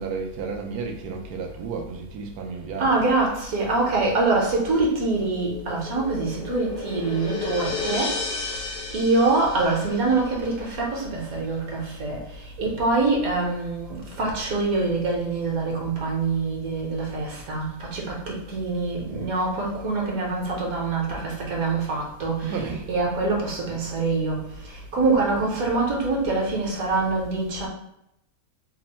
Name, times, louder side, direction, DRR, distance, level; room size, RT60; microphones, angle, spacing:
voice 1, 0.0-3.0 22.4-22.9, right 5 dB, 90° right, 3 dB, 1.1 m, -32 dB
voice 2, 2.8-8.2 8.9-12.2 12.6-24.4 24.9-27.7, right 3 dB, 70° right, -2 dB, 1.4 m, -25 dB
cymbal swells kevinsticks, 5.3-10.5, left 4 dB, 60° left, 0.6 m, -33 dB
3.5 x 2.0 x 4.1 m, 0.81 s
omnidirectional pair, 1.6 m